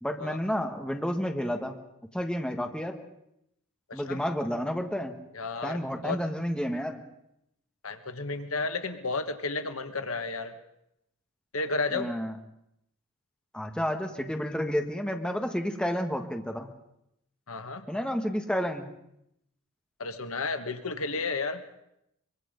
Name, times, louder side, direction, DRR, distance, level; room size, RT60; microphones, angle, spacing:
voice 1, 0.0-1.8 2.1-3.0 3.9-5.1 5.6-7.0 11.9-12.3 13.5-16.7 17.9-18.8, equal, 5° left, 4 dB, 1.6 m, -30 dB
voice 2, 3.9-4.2 5.3-6.2 7.8-10.6 11.5-12.1 17.5-17.8 20.0-21.6, left 3 dB, 70° left, 8 dB, 1.6 m, -32 dB
24.0 x 23.0 x 5.3 m, 0.81 s
head